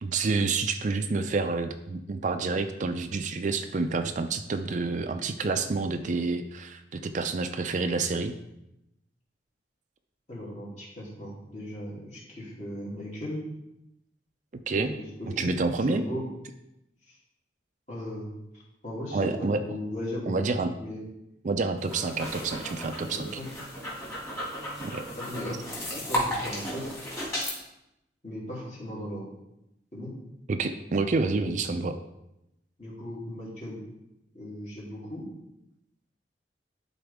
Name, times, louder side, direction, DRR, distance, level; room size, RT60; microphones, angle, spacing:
voice 1, 0.0-8.4 14.5-15.0 15.4-16.0 19.1-19.6 20.3-20.7 21.4-23.3 24.8-25.0 30.5-32.0, right 3 dB, 45° right, 8 dB, 0.4 m, -28 dB
voice 2, 10.3-13.4 14.8-14.9 15.2-15.5 15.9-16.3 17.1-17.2 17.9-18.4 18.8-20.5 20.8-21.0 23.2-23.5 25.1-26.8 28.2-29.3 29.9-30.1 32.8-33.8 34.3-35.2, left 1 dB, 40° left, -5 dB, 2.7 m, -37 dB
sound 1, 21.8-27.6, equal, 15° left, 2.5 m, -34 dB
11.5 x 4.1 x 3.5 m, 0.86 s
head